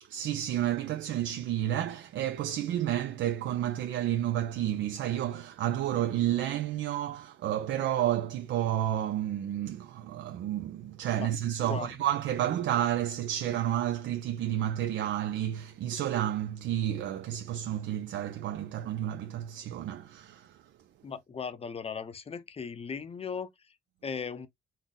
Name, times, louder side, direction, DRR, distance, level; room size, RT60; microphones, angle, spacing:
voice 1, 0.1-20.6, right 12 dB, 70° right, 0.4 m, -31 dB
voice 2, 21.0-23.5 24.0-24.5, left 6 dB, 30° left, 0.6 m, -37 dB
3.7 x 2.1 x 3.8 m
cardioid pair, 90°, 20 cm